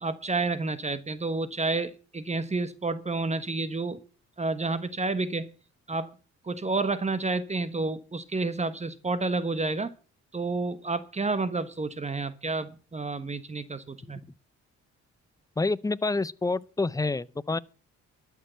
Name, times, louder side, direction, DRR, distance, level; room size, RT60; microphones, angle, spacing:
voice 1, 0.0-4.0 4.4-5.5 5.9-6.1 6.4-9.9 10.3-14.2, right 3 dB, 20° right, 1.2 m, -30 dB
voice 2, 15.6-17.6, left 3 dB, 10° left, 0.5 m, -28 dB
12.5 x 6.7 x 8.1 m
cardioid pair, 90°, 30 cm